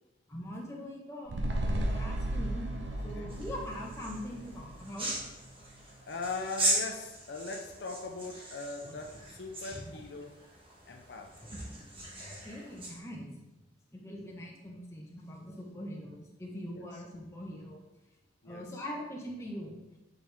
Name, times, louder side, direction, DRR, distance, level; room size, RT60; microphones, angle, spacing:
voice 1, 0.3-2.7 3.0-5.1 8.8-9.0 9.7-10.0 12.2-13.3 13.9-17.9 18.4-19.7, equal, 15° left, -2 dB, 1.3 m, -42 dB
sound 1, 1.3-5.8 6.1-6.2, right 1 dB, 80° right, 0.9 m, -35 dB
sound 2, 3.3-13.0, right 1 dB, 30° right, 1.5 m, -38 dB
voice 2, 6.1-10.4 10.9-11.3 16.7-16.8 18.4-18.7, left 3 dB, 70° left, 3 dB, 0.6 m, -40 dB
8.8 x 4.6 x 3.5 m, 0.98 s
head